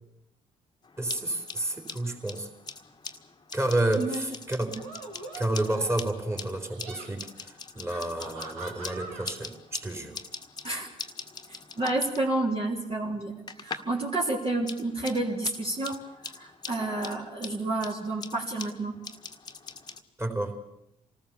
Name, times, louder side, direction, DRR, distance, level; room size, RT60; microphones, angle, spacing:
Scissor Snipping, 0.8-14.0 14.3-20.0, left 4 dB, 25° left, 1.7 m, -43 dB
voice 1, 1.0-2.5 3.5-4.8 5.3-10.2 20.2-20.6, right 1 dB, 15° right, 4 dB, 4.4 m, -30 dB
sound 1, 4.7-6.1 6.6-7.1 7.9-9.3, right 3 dB, 70° right, 2.9 m, -43 dB
voice 2, 11.5-19.0, right 2 dB, 35° right, -3 dB, 3.5 m, -30 dB
27.0 x 19.5 x 7.2 m, 0.83 s
figure-of-eight pair, 45°, 17 cm